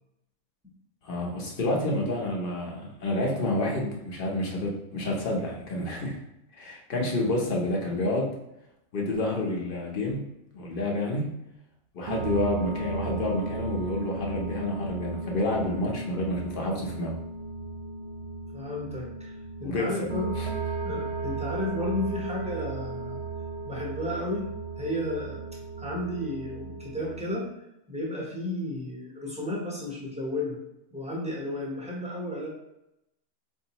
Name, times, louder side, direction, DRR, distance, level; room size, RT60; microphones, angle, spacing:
voice 1, 1.0-6.2 6.5-8.3 8.9-10.2 10.5-11.3 11.9-17.2 19.6-19.9 20.4-20.5, left 1 dB, 45° left, -1 dB, 0.9 m, -29 dB
sound 1, 12.1-27.2, right 3 dB, 60° right, 0.8 m, -35 dB
voice 2, 18.5-19.3 19.6-20.3 20.8-23.2 23.6-24.5 24.8-25.4 25.8-27.5 27.9-30.6 30.9-32.5, left 1 dB, 5° right, -4 dB, 0.7 m, -32 dB
4.4 x 2.6 x 2.9 m, 0.86 s
omnidirectional pair, 1.4 m